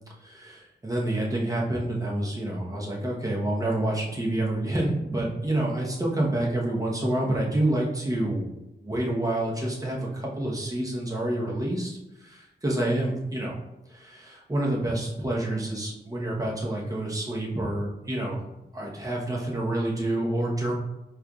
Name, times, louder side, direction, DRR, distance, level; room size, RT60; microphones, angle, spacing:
voice 1, 0.2-8.5 8.8-13.6 13.9-18.4 18.7-20.7, right 1 dB, 20° right, -3 dB, 0.9 m, -28 dB
4.4 x 2.5 x 2.3 m, 0.94 s
cardioid pair, 70°, 19 cm